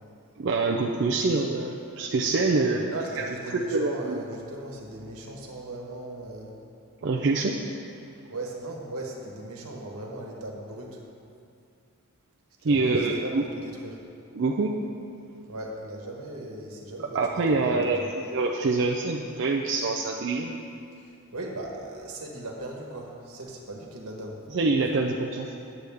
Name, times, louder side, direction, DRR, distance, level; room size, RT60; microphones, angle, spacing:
voice 1, 0.4-2.8 3.2-4.2 7.0-7.6 12.6-13.4 14.3-14.8 17.1-20.6 24.5-25.5, right 3 dB, 50° right, 0 dB, 0.4 m, -25 dB
voice 2, 2.4-6.5 8.3-11.0 12.6-14.0 15.5-18.1 21.0-24.4, right 2 dB, 80° right, -1 dB, 1.3 m, -38 dB
9.8 x 7.9 x 3.5 m, 2.6 s
head